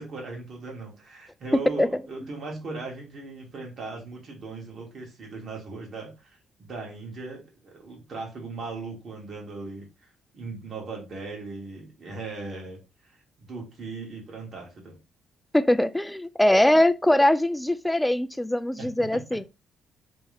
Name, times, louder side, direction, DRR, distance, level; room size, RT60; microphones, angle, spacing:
voice 1, 0.0-15.0 18.8-19.2, right 3 dB, 55° right, 1.8 m, -38 dB
voice 2, 1.5-2.0 15.5-19.4, left 1 dB, 5° left, 0.3 m, -22 dB
3.4 x 3.0 x 3.4 m
cardioid pair, 90°, 0 cm